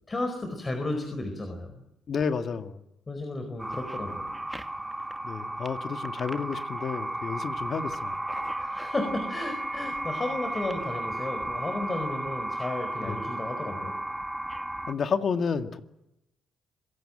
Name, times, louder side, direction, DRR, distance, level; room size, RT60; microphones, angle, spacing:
voice 1, 0.1-1.7 3.1-4.3 8.6-13.9, left 2 dB, 25° left, 6 dB, 4.6 m, -33 dB
voice 2, 2.1-2.8 5.2-8.2 13.0-13.2 14.9-15.8, left 6 dB, 50° left, 8 dB, 2.0 m, -30 dB
sound 1, 3.6-14.9, right 1 dB, 5° right, 1.6 m, -34 dB
26.5 x 17.0 x 9.0 m, 0.89 s
cardioid pair, 90°, 0 cm